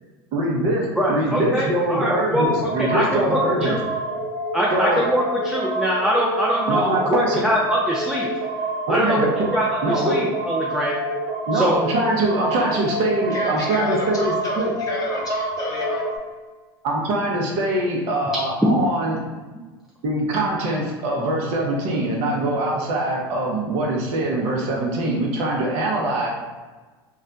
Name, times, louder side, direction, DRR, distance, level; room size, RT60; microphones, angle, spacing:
voice 1, 0.3-3.7 4.7-5.1 6.7-7.4 8.9-9.3 9.8-10.3 11.5-14.7 16.8-19.2 20.0-26.3, right 1 dB, 60° right, -1 dB, 0.8 m, -23 dB
voice 2, 1.0-3.8 4.5-8.3 8.9-9.3 9.5-10.9 11.5-11.8, equal, 5° right, -4 dB, 0.4 m, -23 dB
sound 1, 2.4-16.2, right 1 dB, 30° right, 1.0 m, -27 dB
voice 3, 13.3-16.0, left 2 dB, 30° left, -3 dB, 1.0 m, -30 dB
2.4 x 2.1 x 3.8 m, 1.3 s
hypercardioid pair, 90°, 12 cm